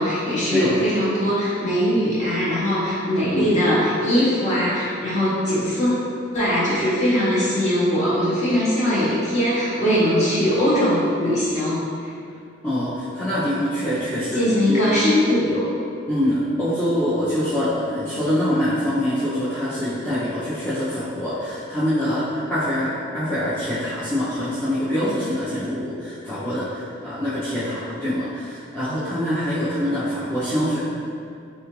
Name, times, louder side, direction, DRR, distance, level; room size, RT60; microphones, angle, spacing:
voice 1, 0.0-5.9 6.3-12.1 14.3-15.6, equal, 35° left, -9 dB, 0.8 m, -21 dB
voice 2, 12.6-14.4 14.7-14.8 16.1-30.8, equal, 10° left, -13 dB, 0.4 m, -24 dB
3.6 x 2.4 x 2.9 m, 2.3 s
head